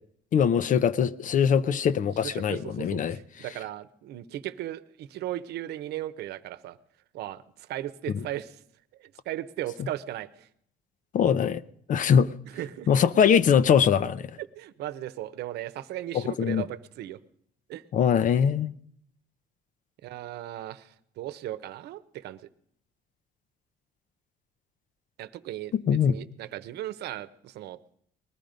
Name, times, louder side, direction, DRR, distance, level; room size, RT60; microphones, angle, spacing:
voice 1, 0.3-3.2 11.1-11.6 11.9-12.3 12.9-14.3 16.1-16.6 17.9-18.7 25.7-26.2, left 7 dB, 50° left, 0.7 m, -22 dB
voice 2, 2.2-6.8 7.1-8.6 9.0-10.5 12.4-12.9 14.4-17.2 17.7-17.8 20.0-22.4 25.2-27.8, right 13 dB, 75° right, 0.9 m, -37 dB
20.0 x 13.5 x 5.2 m
cardioid pair, 110°, 17 cm